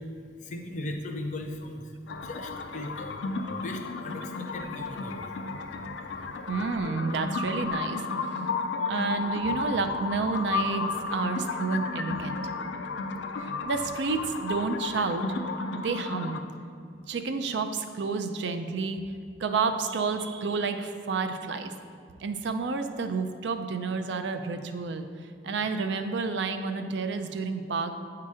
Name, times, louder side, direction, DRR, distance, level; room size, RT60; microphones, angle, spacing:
voice 1, 0.4-1.9 2.2-3.2 3.5-5.3, left 1 dB, 45° left, 4 dB, 0.6 m, -38 dB
sound 1, 2.1-16.4, left 4 dB, 85° left, 0.4 m, -33 dB
voice 2, 6.5-8.4 8.9-12.4 13.4-15.3 15.7-16.4 17.1-19.0 19.4-21.7 22.2-25.1 25.4-28.0, right 4 dB, 75° right, 8 dB, 0.4 m, -30 dB
8.3 x 2.9 x 4.8 m, 2.4 s
head